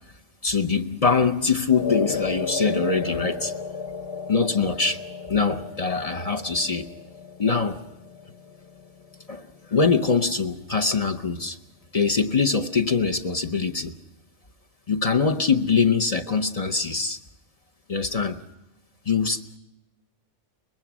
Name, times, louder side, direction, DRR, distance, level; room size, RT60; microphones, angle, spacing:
voice 1, 0.4-3.5 4.3-5.0 5.3-6.9 7.4-7.8 9.3-11.6 11.9-13.9 14.9-17.2 17.9-18.4 19.1-19.6, left 5 dB, 35° left, 0.8 m, -23 dB
sound 1, 1.8-10.3, left 5 dB, 55° left, 1.2 m, -34 dB
24.0 x 20.5 x 6.1 m
omnidirectional pair, 1.2 m